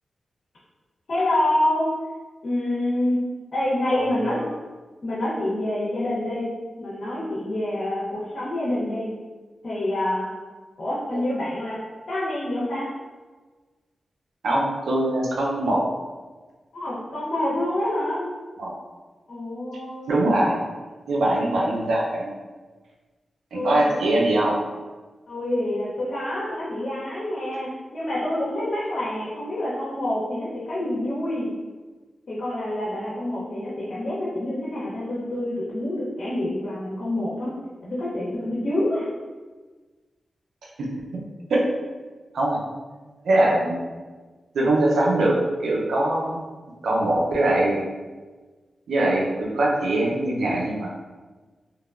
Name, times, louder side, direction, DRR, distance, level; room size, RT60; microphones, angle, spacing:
voice 1, 1.1-1.9 2.4-3.2 3.5-4.4 5.0-6.5 6.8-9.1 9.6-10.3 10.8-11.8 12.1-12.9 16.7-18.2 19.3-20.1 23.5-23.9 25.3-31.5 32.3-37.5 37.8-39.1, left 1 dB, 70° left, -9 dB, 0.7 m, -27 dB
voice 2, 14.4-15.8 18.6-18.7 20.1-20.6 21.1-22.3 23.5-24.5 40.8-40.9 41.1-41.2 41.5-41.6 42.3-42.6 43.2-43.8 44.5-45.4 45.6-46.4 46.8-47.9 48.9-50.9, right 1 dB, 85° right, -3 dB, 0.4 m, -22 dB
2.8 x 2.1 x 2.3 m, 1.3 s
cardioid pair, 40°, 0 cm